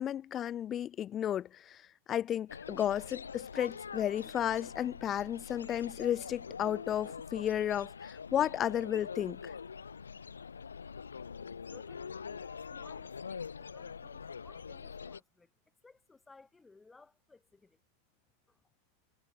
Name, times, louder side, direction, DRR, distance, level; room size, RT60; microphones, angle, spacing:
voice 1, 0.0-1.8 2.1-9.5, left 10 dB, 30° left, 0.7 m, -33 dB
sound 1, 2.5-15.2, left 6 dB, 75° left, 0.5 m, -44 dB
voice 2, 11.7-15.5 15.8-17.8 18.5-18.6, left 3 dB, 10° left, 2.0 m, -60 dB
figure-of-eight pair, 90°, 0 cm